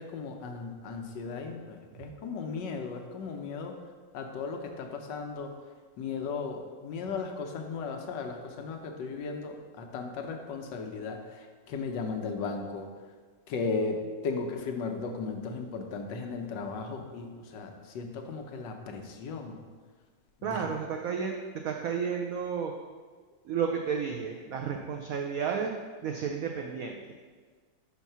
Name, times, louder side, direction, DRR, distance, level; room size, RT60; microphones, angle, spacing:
voice 1, 0.0-3.7 4.1-5.5 6.0-12.9 13.5-19.6 20.4-20.7, left 4 dB, 75° left, 4 dB, 1.3 m, -36 dB
voice 2, 20.4-21.4 21.6-22.7 23.5-25.7 26.0-26.9, right 6 dB, 80° right, 2 dB, 0.7 m, -32 dB
5.7 x 4.5 x 5.5 m, 1.5 s
omnidirectional pair, 2.0 m